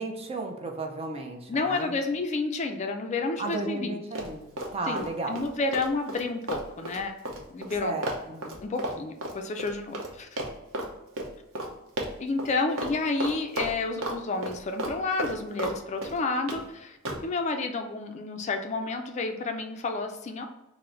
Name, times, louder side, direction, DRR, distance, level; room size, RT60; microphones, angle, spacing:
voice 1, 0.0-1.9 3.4-5.5 7.8-8.4, right 2 dB, 30° right, 3 dB, 0.5 m, -34 dB
voice 2, 1.5-4.0 4.9-7.2 7.5-8.0 8.4-10.3 12.2-17.0 17.2-20.5, left 3 dB, 35° left, 5 dB, 0.3 m, -30 dB
Run, 4.1-5.1 5.3-10.1 10.4-10.9 11.2-11.3 11.5-11.7 12.0-12.5 12.8-12.9 13.2-14.2 14.4-15.8 16.0-16.6 17.0-17.2, right 1 dB, 70° right, 0.8 m, -33 dB
3.8 x 2.0 x 4.3 m, 0.95 s
head